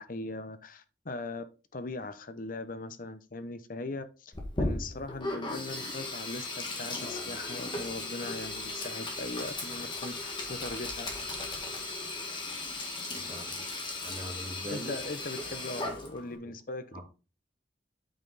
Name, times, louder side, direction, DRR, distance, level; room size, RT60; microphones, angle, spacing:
voice 1, 0.0-1.4 1.7-11.1 14.7-17.0, left 2 dB, 45° left, 0.8 m, -40 dB
Sink (filling or washing), 4.3-16.4, left 2 dB, 25° left, 1.8 m, -36 dB
voice 2, 13.1-13.6 14.0-15.0 16.9-17.0, equal, 30° right, 2.8 m, -41 dB
8.9 x 5.6 x 4.0 m
head